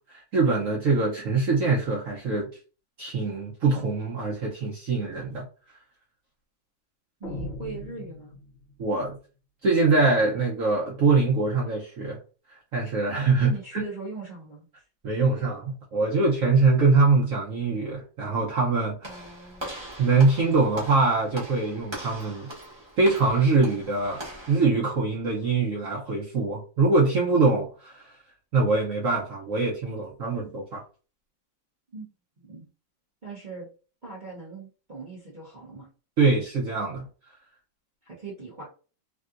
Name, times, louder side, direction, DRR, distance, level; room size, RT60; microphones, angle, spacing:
voice 1, 0.1-2.5 3.0-5.4 8.8-9.2 9.6-12.2 12.7-13.8 15.0-19.1 20.0-22.5 23.0-24.2 24.5-28.1 28.5-30.8 36.2-37.1, right 3 dB, 65° right, -3 dB, 0.8 m, -23 dB
sound 1, 7.2-8.8, left 2 dB, 65° left, 0.6 m, -38 dB
voice 2, 7.2-8.4 13.4-14.8 19.0-19.7 31.9-32.1 32.4-32.7 33.2-33.7 34.0-35.9 38.0-38.7, right 3 dB, 80° right, -6 dB, 0.4 m, -40 dB
Walk footsteps / Slam, 19.0-24.6, right 1 dB, 25° right, 0.7 m, -40 dB
3.3 x 2.7 x 2.4 m, 0.36 s
omnidirectional pair, 2.2 m